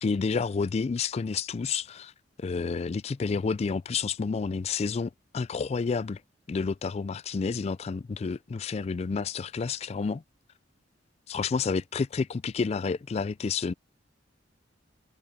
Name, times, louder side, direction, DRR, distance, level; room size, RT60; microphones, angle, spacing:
voice 1, 0.0-2.1 2.4-6.2 6.5-10.2 11.3-13.7, left 5 dB, 35° left, 0.3 m, -30 dB
head